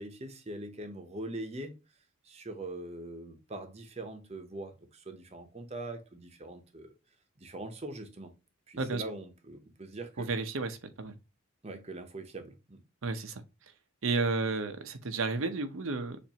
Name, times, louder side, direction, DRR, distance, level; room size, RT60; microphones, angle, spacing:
voice 1, 0.0-1.7 2.2-6.9 7.4-8.3 8.7-10.3 11.6-12.8, right 2 dB, 30° right, 0.8 m, -42 dB
voice 2, 10.2-11.1 13.0-13.4 14.0-16.2, right 3 dB, 75° right, 0.7 m, -32 dB
6.9 x 2.6 x 2.9 m
head